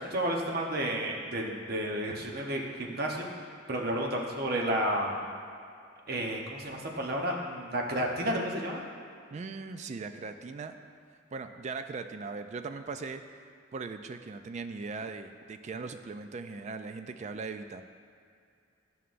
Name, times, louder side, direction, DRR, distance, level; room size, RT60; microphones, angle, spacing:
voice 1, 0.0-3.3 3.7-5.2 6.1-8.8, right 1 dB, 50° right, 0 dB, 0.8 m, -31 dB
voice 2, 9.3-10.8 11.3-17.8, right 4 dB, 35° right, 8 dB, 0.3 m, -39 dB
11.0 x 5.5 x 2.5 m, 2.4 s
head